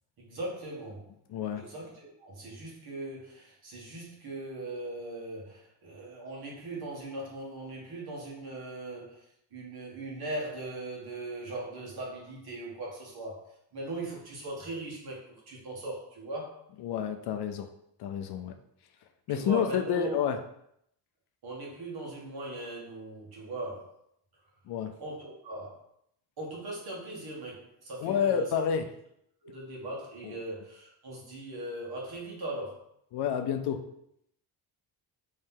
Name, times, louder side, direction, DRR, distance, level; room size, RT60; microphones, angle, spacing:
voice 1, 0.2-1.1 1.5-16.6 19.3-20.3 21.4-24.0 25.0-25.8 26.4-28.5 29.4-32.8, right 2 dB, 55° right, -3 dB, 1.4 m, -39 dB
voice 2, 1.3-1.7 16.8-17.7 18.0-18.5 19.3-20.4 24.7-24.9 28.0-28.8 30.2-30.4 33.1-33.8, left 8 dB, 65° left, 7 dB, 0.5 m, -29 dB
3.2 x 2.7 x 3.6 m, 0.74 s
cardioid pair, 90°, 44 cm